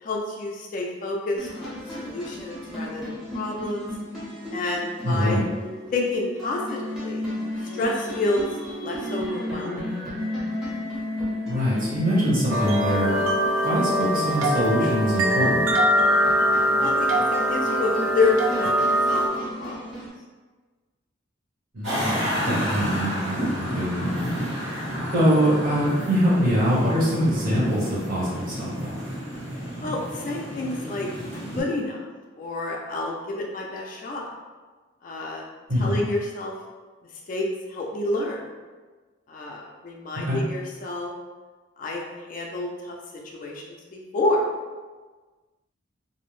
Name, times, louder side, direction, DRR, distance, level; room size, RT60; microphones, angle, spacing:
voice 1, 0.0-3.9 4.5-5.4 5.9-7.2 7.7-8.5 8.8-9.9 13.4-13.8 16.8-18.7 19.1-20.0 29.8-31.1 31.3-32.1 32.4-34.3 35.0-35.5 35.8-36.5 37.3-38.5 39.3-41.1 41.8-43.0 43.2-44.4, left 2 dB, 40° left, -1 dB, 0.3 m, -29 dB
sound 1, 1.4-20.1, left 1 dB, ahead, 0.6 m, -34 dB
voice 2, 5.0-5.4 11.5-13.2 13.6-15.6 21.7-24.3 25.1-29.0 35.7-35.9 40.2-40.4, equal, 45° right, -7 dB, 0.9 m, -23 dB
sound 2, 12.5-19.3, equal, 80° right, 0.4 m, -22 dB
sound 3, 21.8-31.6, equal, 65° right, 1.3 m, -30 dB
2.5 x 2.0 x 3.0 m, 1.3 s
head